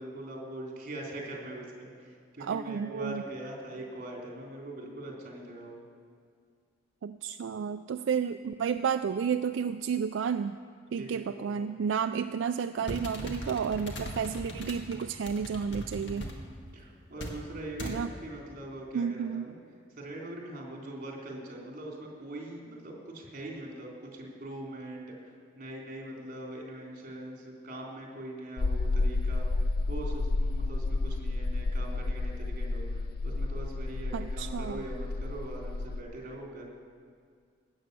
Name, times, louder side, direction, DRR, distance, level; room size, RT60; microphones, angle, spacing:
voice 1, 0.0-5.8 11.0-11.6 16.0-19.5 20.0-29.5 29.9-32.9 33.2-36.7, right 1 dB, 50° right, -2 dB, 3.3 m, -42 dB
voice 2, 2.4-3.2 7.0-10.6 10.9-16.3 17.8-18.1 18.9-19.5 34.1-34.8, right 7 dB, 75° right, 9 dB, 0.3 m, -31 dB
sound 1, 12.8-16.4 17.2-17.4 17.8-18.0, equal, 70° left, 1.8 m, -39 dB
sound 2, 28.6-36.0, left 2 dB, 55° left, 0.4 m, -31 dB
16.5 x 8.7 x 6.8 m, 2.1 s
head